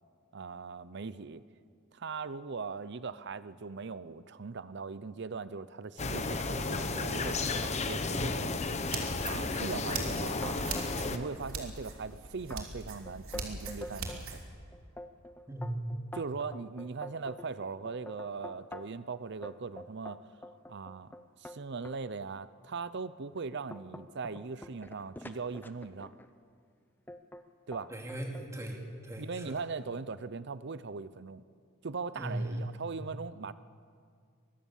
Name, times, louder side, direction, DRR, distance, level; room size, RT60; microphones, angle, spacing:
voice 1, 0.3-1.4 1.9-8.6 9.2-10.7 11.1-14.4 16.1-20.2 20.7-21.1 21.4-26.1 27.7-27.9 29.2-31.4 31.8-33.5, right 4 dB, 55° right, 15 dB, 0.6 m, -40 dB
sound 1, 6.0-11.2, left 3 dB, 30° left, 1.1 m, -33 dB
sound 2, 8.9-14.4, right 4 dB, 80° right, 3.1 m, -41 dB
sound 3, 10.4-11.3 11.6-12.1 12.5-12.6 13.1-14.2 14.7-19.0 19.4-22.0 22.6-22.7 23.2-26.3 27.1-27.4 27.7-28.5, left 1 dB, 10° left, 0.7 m, -46 dB
voice 2, 15.5-16.0 27.9-29.5 32.1-32.7, right 1 dB, 15° right, 1 dB, 2.8 m, -37 dB
23.5 x 20.5 x 7.3 m, 2.2 s
head